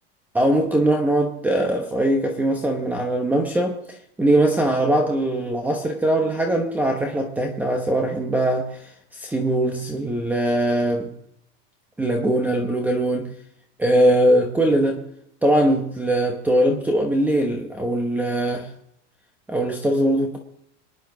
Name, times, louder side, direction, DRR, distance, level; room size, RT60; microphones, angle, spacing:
voice 1, 0.3-11.1 12.0-13.3 13.8-15.1 15.4-18.7 19.5-20.4, right 1 dB, 5° right, 1.0 m, -21 dB
27.5 x 10.5 x 3.9 m
supercardioid pair, 160°, 34 cm